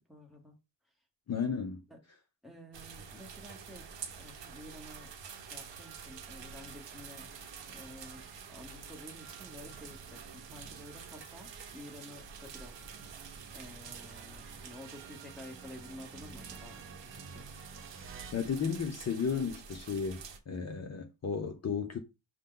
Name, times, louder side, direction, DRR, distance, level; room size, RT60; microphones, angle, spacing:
voice 1, 0.1-0.5 1.9-2.0 2.4-3.9 4.2-5.1 5.4-7.3 7.7-12.7 13.5-17.7, left 1 dB, ahead, 1.1 m, -51 dB
voice 2, 1.3-1.8 18.3-22.0, left 6 dB, 35° left, 0.6 m, -34 dB
sound 1, 2.7-20.4, right 6 dB, 70° right, 1.0 m, -48 dB
sound 2, 4.9-18.3, right 5 dB, 30° right, 0.5 m, -54 dB
6.3 x 2.2 x 3.7 m
cardioid pair, 130°, 46 cm